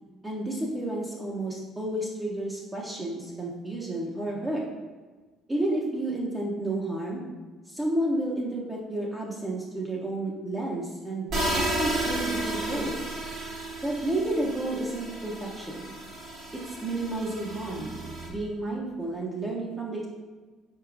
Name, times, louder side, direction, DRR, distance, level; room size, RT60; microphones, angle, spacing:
voice 1, 0.2-4.6 5.5-7.2 7.7-11.3 11.5-13.0 13.8-15.9 16.5-18.0 18.3-20.1, right 1 dB, 15° right, -4 dB, 0.6 m, -31 dB
sound 1, 11.3-18.3, right 1 dB, 60° right, 1.3 m, -33 dB
4.6 x 4.0 x 2.5 m, 1.3 s
cardioid pair, 100°, 0 cm